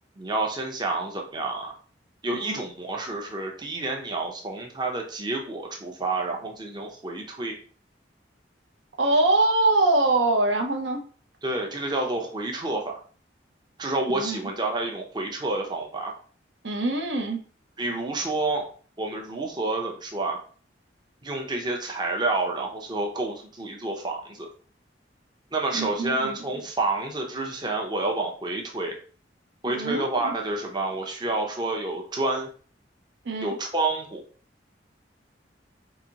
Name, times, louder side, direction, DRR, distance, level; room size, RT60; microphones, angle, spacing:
voice 1, 0.2-1.7 2.2-7.6 11.4-13.0 13.8-16.1 17.8-18.7 19.0-20.4 21.2-24.5 25.5-29.0 29.6-32.5 33.4-34.2, right 2 dB, 25° right, 1 dB, 0.5 m, -29 dB
voice 2, 9.0-11.0 14.1-14.4 16.6-17.4 25.7-26.4 29.7-30.4 33.2-33.6, right 2 dB, 80° right, 3 dB, 0.6 m, -24 dB
3.9 x 2.6 x 2.8 m, 0.42 s
head